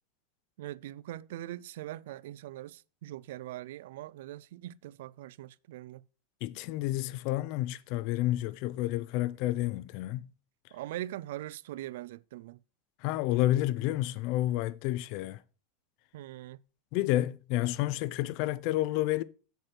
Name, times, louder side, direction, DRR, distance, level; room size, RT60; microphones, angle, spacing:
voice 1, 0.6-6.0 10.7-12.6 16.1-16.6, right 14 dB, 75° right, 0.3 m, -42 dB
voice 2, 6.4-10.3 13.0-15.4 16.9-19.2, left 15 dB, 40° left, 0.4 m, -30 dB
7.9 x 4.5 x 5.7 m
supercardioid pair, 180°, 0 cm